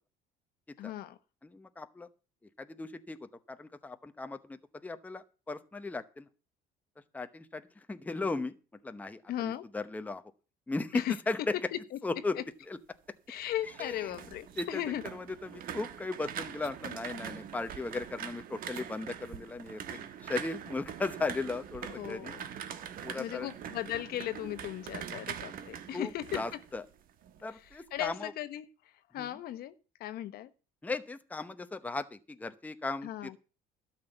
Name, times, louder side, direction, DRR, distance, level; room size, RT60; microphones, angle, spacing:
voice 1, 0.8-1.2 9.3-9.6 10.9-11.1 11.7-12.0 12.3-12.4 13.3-15.0 21.9-22.4 23.1-26.6 27.5-29.7 30.0-30.5 33.0-33.4, left 13 dB, 65° left, 1.1 m, -37 dB
voice 2, 1.4-2.1 2.6-3.2 3.5-6.3 7.1-7.6 7.9-8.6 8.8-10.2 10.7-11.5 12.0-12.4 12.7-12.8 13.8-14.1 14.6-14.7 15.1-22.3 23.0-23.5 25.9-26.8 27.4-28.3 29.2-29.3 30.8-33.1, left 3 dB, 10° left, 0.8 m, -37 dB
sound 1, 13.4-27.4 27.7-28.1, right 9 dB, 55° right, 1.4 m, -43 dB
sound 2, 14.5-14.8 16.5-16.7 18.6-18.8, right 9 dB, 75° right, 1.4 m, -46 dB
12.5 x 5.8 x 8.0 m
cardioid pair, 125°, 17 cm